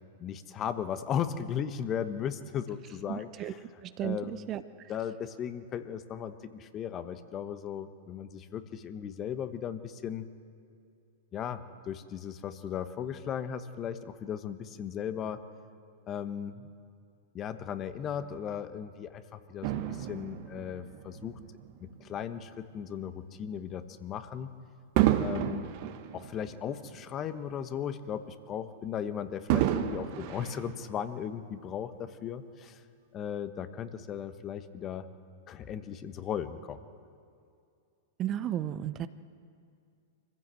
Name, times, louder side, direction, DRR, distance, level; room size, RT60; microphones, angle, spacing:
voice 1, 0.2-3.6 4.0-4.5 4.9-10.3 11.3-15.4 16.1-16.7 17.3-21.4 21.8-24.5 25.2-25.7 26.1-32.8 33.1-35.1 35.5-36.8, left 8 dB, 30° left, 11 dB, 1.2 m, -37 dB
voice 2, 3.1-3.5 3.8-4.6 38.2-39.1, right 11 dB, 35° right, 13 dB, 0.7 m, -34 dB
Fireworks, 19.6-22.2 22.9-23.1 25.0-27.5 27.8-27.9 29.5-31.4 32.1-32.2, right 12 dB, 50° right, 1.3 m, -31 dB
24.5 x 15.5 x 7.8 m, 2.4 s
hypercardioid pair, 105°, 0 cm